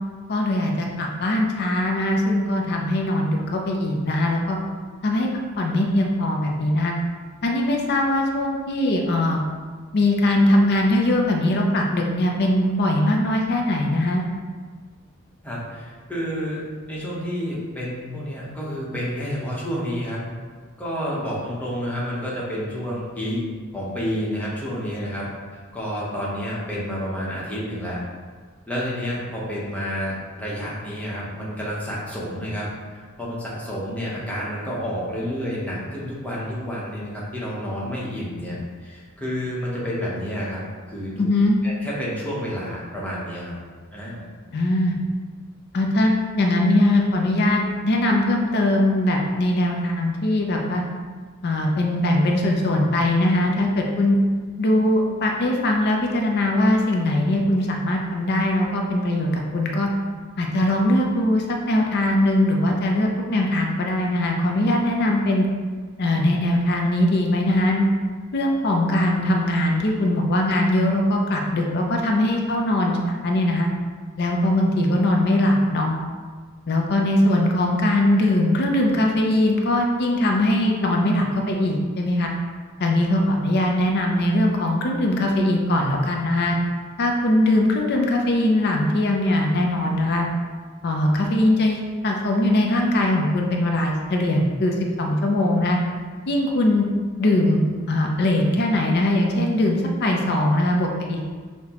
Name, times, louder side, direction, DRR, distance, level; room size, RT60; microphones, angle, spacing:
voice 1, 0.3-4.6 5.0-5.3 5.6-6.9 7.4-9.4 9.9-14.2 41.2-41.6 44.5-45.0 45.7-50.8 51.4-54.2 54.6-59.9 60.4-65.5 66.0-67.9 68.3-73.7 74.2-75.9 76.7-82.3 82.8-86.6 87.0-90.3 90.8-95.8 96.3-96.9 97.2-101.2, left 1 dB, 50° left, 1 dB, 0.5 m, -21 dB
voice 2, 15.4-16.6 16.9-20.2 20.8-23.4 23.7-25.3 25.7-28.0 28.7-38.5 38.8-41.2 41.6-43.6 43.9-44.3, equal, 5° left, -7 dB, 0.9 m, -29 dB
5.6 x 2.1 x 2.9 m, 1.5 s
head